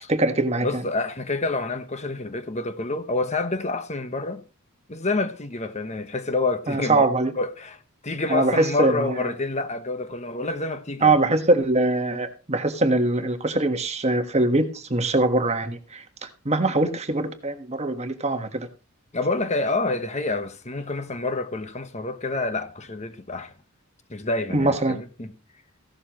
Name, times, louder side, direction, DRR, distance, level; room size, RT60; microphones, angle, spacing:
voice 1, 0.1-0.8 6.7-7.3 8.3-9.2 11.0-18.7 24.5-25.0, right 2 dB, 30° right, 1.4 m, -22 dB
voice 2, 0.6-4.4 4.9-7.1 7.4-11.2 19.1-23.5 24.1-25.3, left 3 dB, 30° left, 1.1 m, -28 dB
16.0 x 12.0 x 3.1 m
head